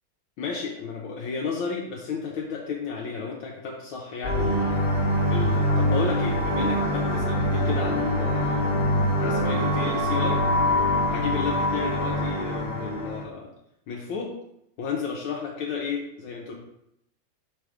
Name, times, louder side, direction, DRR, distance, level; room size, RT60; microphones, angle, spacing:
voice 1, 0.4-4.9 5.3-8.6 9.2-10.4 11.1-13.5 13.9-14.4 14.8-16.5, left 5 dB, 75° left, -2 dB, 1.5 m, -32 dB
sound 1, 4.2-13.2, left 1 dB, 35° left, 1.1 m, -24 dB
4.6 x 4.2 x 4.9 m, 0.79 s
omnidirectional pair, 2.3 m